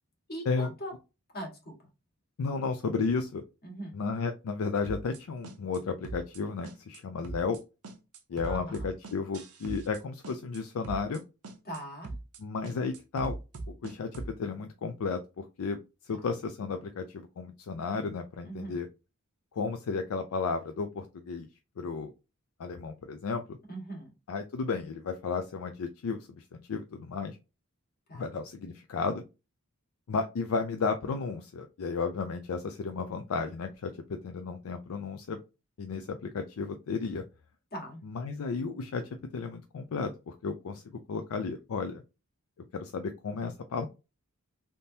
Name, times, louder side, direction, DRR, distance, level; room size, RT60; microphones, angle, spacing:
voice 1, 0.3-0.9 1.3-1.8 3.6-4.0 8.4-8.9 11.6-12.1 16.1-16.2 18.4-18.8 23.7-24.1 28.1-28.3 37.7-38.0, right 1 dB, 45° left, 0 dB, 1.5 m, -41 dB
voice 2, 2.4-3.4 3.9-7.6 8.3-11.2 12.4-13.3 13.8-18.9 19.5-21.5 21.8-22.1 22.6-23.6 24.3-27.4 28.1-29.2 30.1-35.4 35.8-37.2 38.1-39.0 39.3-42.0 42.7-43.9, left 4 dB, 65° left, 7 dB, 0.4 m, -33 dB
sound 1, 4.8-5.2 5.4-5.8 6.0-6.4 6.6-7.0 7.2-7.6 7.8-10.0 10.2-10.6 10.8-11.2 11.4-11.8 12.0-12.4 12.6-14.3, right 2 dB, 85° right, 0.8 m, -40 dB
3.5 x 2.7 x 2.6 m, 0.28 s
head